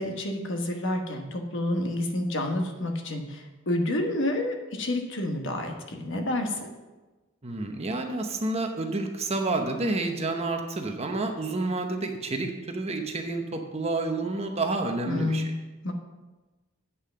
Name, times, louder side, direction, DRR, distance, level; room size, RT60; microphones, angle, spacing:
voice 1, 0.0-6.7 15.1-15.5 15.8-15.9, left 1 dB, 60° left, 3 dB, 1.2 m, -29 dB
voice 2, 7.4-15.5, right 2 dB, 30° right, 4 dB, 0.9 m, -29 dB
8.4 x 5.6 x 6.7 m, 1.2 s
head